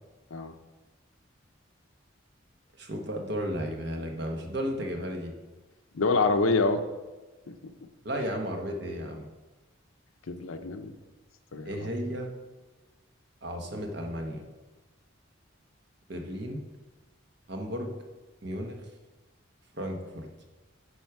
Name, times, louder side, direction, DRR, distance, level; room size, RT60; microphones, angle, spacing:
voice 1, 2.8-5.3 8.0-9.2 11.6-12.3 13.4-14.4 16.1-16.6 17.5-17.9 18.4-18.8 19.8-20.3, equal, 55° right, 3 dB, 1.2 m, -34 dB
voice 2, 5.9-6.8 7.5-7.6 10.3-10.9 11.5-11.9, left 3 dB, 80° left, 8 dB, 0.7 m, -26 dB
9.8 x 4.3 x 4.7 m, 1.2 s
head